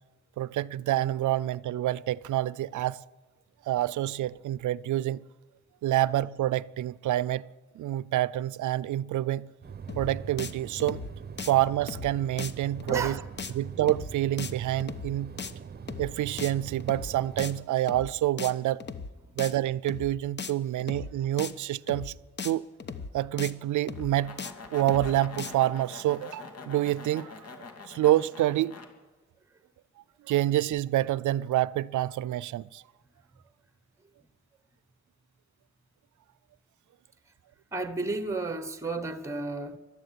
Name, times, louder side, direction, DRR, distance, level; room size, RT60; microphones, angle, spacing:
voice 1, 0.4-3.0 3.7-5.2 5.8-7.4 7.8-9.5 10.0-11.0 11.5-13.2 13.6-15.3 16.0-18.8 19.4-22.1 22.4-22.6 23.1-24.4 24.7-28.8 30.3-32.8, right 14 dB, 85° right, 0.6 m, -27 dB
sound 1, 9.6-17.6, right 6 dB, 35° right, 0.9 m, -42 dB
sound 2, 9.9-10.1 10.4-10.5 10.8-11.1 11.4-11.5 11.9-12.1 12.4-12.5 12.8-13.1 13.4-13.5 13.9-14.1 14.4-14.5 14.8-15.1 15.4-15.5 15.9-16.1 16.4-16.5 16.8-17.1 17.4-17.5 17.9-18.1 18.4-18.5 18.8-19.1 19.4-19.5 19.9-20.1 20.4-20.5 20.8-21.1 21.4-21.5 21.9-22.1 22.4-22.5 22.8-23.1 23.4-23.5 23.9-24.1 24.4-24.5 24.8-25.1 25.4-25.5, left 5 dB, 40° left, 1.1 m, -37 dB
voice 2, 12.9-13.3 19.2-19.4 37.7-39.8, right 3 dB, 10° right, 1.2 m, -32 dB
sound 3, 23.9-28.9, left 4 dB, 55° left, 2.6 m, -45 dB
21.5 x 12.5 x 9.9 m
wide cardioid pair, 155°, 29 cm